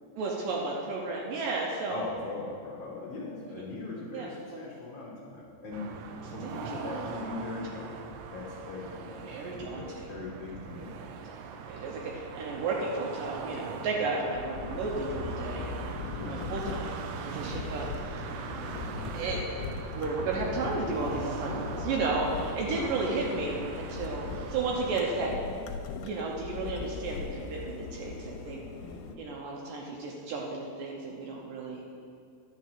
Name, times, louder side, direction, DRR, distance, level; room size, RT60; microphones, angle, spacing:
voice 1, 0.2-2.0 3.5-3.6 4.1-4.6 6.4-7.1 9.3-10.1 11.7-15.7 16.2-17.0 17.3-17.9 19.1-19.4 19.9-25.3 26.0-28.6 29.2-31.8, right 3 dB, 75° right, -2 dB, 2.3 m, -33 dB
voice 2, 1.9-11.1 16.1-16.5 22.8-23.2 28.8-29.2, left 3 dB, 70° left, -4 dB, 1.4 m, -40 dB
sound 1, 5.7-25.3, right 6 dB, 90° right, 1.7 m, -41 dB
sound 2, 14.3-29.2, left 5 dB, 90° left, 2.5 m, -39 dB
10.5 x 4.7 x 7.3 m, 2.4 s
omnidirectional pair, 4.3 m